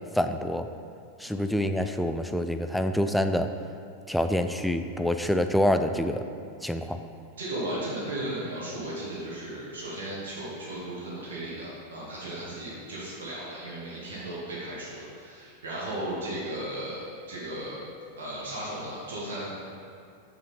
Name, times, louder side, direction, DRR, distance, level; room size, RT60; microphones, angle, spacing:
voice 1, 0.1-0.7 1.2-3.5 4.1-6.2 6.6-7.0, left 1 dB, ahead, 7 dB, 0.4 m, -26 dB
voice 2, 7.4-17.8 18.2-19.6, right 1 dB, 60° right, -7 dB, 1.8 m, -35 dB
6.7 x 6.3 x 4.3 m, 2.5 s
figure-of-eight pair, 90°, 0 cm